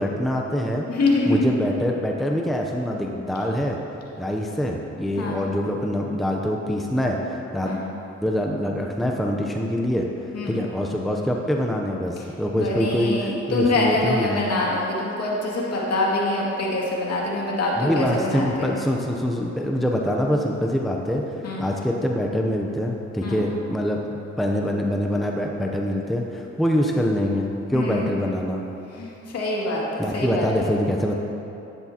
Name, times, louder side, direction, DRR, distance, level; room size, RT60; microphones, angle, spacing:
voice 1, 0.0-0.9 1.3-3.8 4.2-7.8 8.2-10.1 10.5-14.4 17.8-21.2 21.6-28.6 30.0-31.1, equal, ahead, 0 dB, 0.7 m, -24 dB
voice 2, 0.9-1.6 5.2-5.4 7.6-7.8 10.3-10.6 12.5-18.7 21.4-21.7 23.2-23.4 27.7-28.1 28.9-30.7, left 2 dB, 55° left, -4 dB, 2.4 m, -25 dB
12.0 x 9.8 x 2.9 m, 3.0 s
cardioid pair, 90°, 30 cm